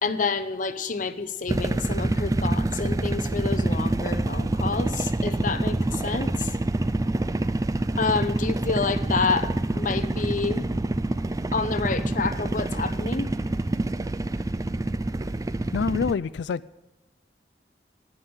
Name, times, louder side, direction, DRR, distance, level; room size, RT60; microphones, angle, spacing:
voice 1, 0.0-6.6 8.0-10.6 11.5-13.3, left 4 dB, 50° left, 0.8 m, -28 dB
sound 1, 1.5-16.1, right 2 dB, 20° right, 0.4 m, -26 dB
voice 2, 15.7-16.6, left 6 dB, 80° left, 0.3 m, -26 dB
10.0 x 8.7 x 9.7 m
head